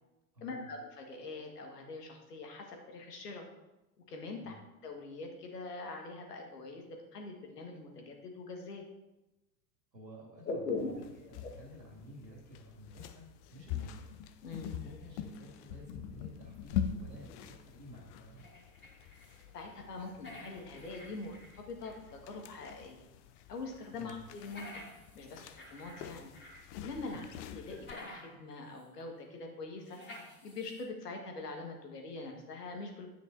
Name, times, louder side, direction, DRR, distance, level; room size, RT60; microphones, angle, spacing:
voice 1, 0.4-3.4 4.1-4.5 4.8-6.9 7.1-8.8 10.4-10.9 14.4-14.8 19.0-19.2 19.5-23.0 23.5-24.7 25.1-26.3 26.8-30.0 30.4-33.1, left 3 dB, 75° left, 2 dB, 1.8 m, -43 dB
voice 2, 9.9-14.1 14.7-18.4 23.9-24.2 27.1-27.3, equal, 90° right, -3 dB, 2.6 m, -52 dB
sound 1, 10.8-27.9, left 9 dB, 45° left, 0.7 m, -44 dB
sound 2, 18.4-19.5 19.7-22.1 22.5-22.6 24.3-26.6 26.9-28.4 28.8-28.9 29.8-30.8, left 1 dB, 20° left, 2.4 m, -52 dB
10.0 x 8.6 x 2.7 m, 1.0 s
figure-of-eight pair, 80°, 48 cm